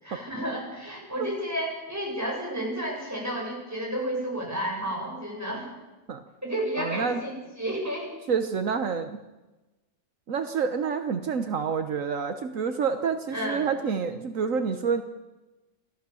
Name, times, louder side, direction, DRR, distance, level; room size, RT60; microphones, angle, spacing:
voice 1, 0.0-5.7 6.4-8.1 13.3-13.7, right 1 dB, 10° right, -2 dB, 7.3 m, -31 dB
voice 2, 6.8-7.2 8.3-9.2 10.3-15.0, right 6 dB, 75° right, 8 dB, 1.4 m, -28 dB
28.5 x 14.5 x 7.1 m, 1.1 s
omnidirectional pair, 1.4 m